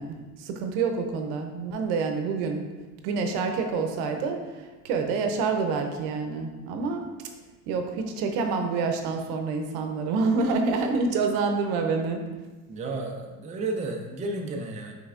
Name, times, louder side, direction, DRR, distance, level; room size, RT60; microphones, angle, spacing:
voice 1, 0.0-2.6 3.0-7.0 7.7-12.2, right 4 dB, 70° right, 5 dB, 0.7 m, -27 dB
voice 2, 12.7-14.9, right 2 dB, 20° right, 1 dB, 0.4 m, -32 dB
5.4 x 3.4 x 2.4 m, 1.2 s
supercardioid pair, 100°, 39 cm